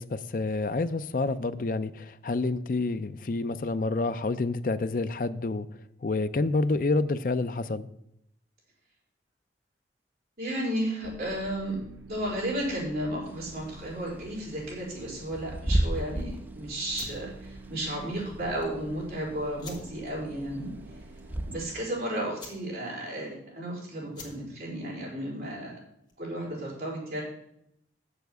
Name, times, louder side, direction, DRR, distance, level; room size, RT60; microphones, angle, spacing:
voice 1, 0.0-5.7 6.0-7.9, left 3 dB, 50° left, 12 dB, 0.5 m, -28 dB
voice 2, 10.4-11.8 12.1-20.7 21.5-25.8 26.2-27.2, right 1 dB, 55° right, -4 dB, 4.5 m, -33 dB
sound 1, 11.0-21.7, right 2 dB, 85° right, 0.8 m, -47 dB
Bird / Wind, 13.2-21.9, right 1 dB, 10° right, 0.5 m, -34 dB
sound 2, 16.9-26.4, left 3 dB, 25° left, 1.8 m, -51 dB
7.3 x 7.0 x 8.0 m, 0.77 s
head